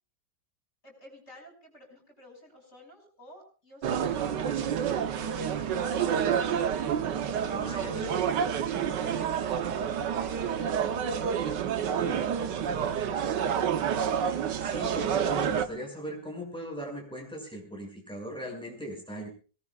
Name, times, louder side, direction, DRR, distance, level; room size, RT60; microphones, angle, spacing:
voice 1, 0.8-6.8 7.5-7.9, equal, 40° left, 1 dB, 7.1 m, -53 dB
sound 1, 3.8-15.7, right 8 dB, 90° right, 1.6 m, -29 dB
voice 2, 7.5-8.2 14.6-19.3, equal, 5° left, -1 dB, 6.5 m, -39 dB
25.5 x 18.5 x 2.4 m, 0.36 s
omnidirectional pair, 1.8 m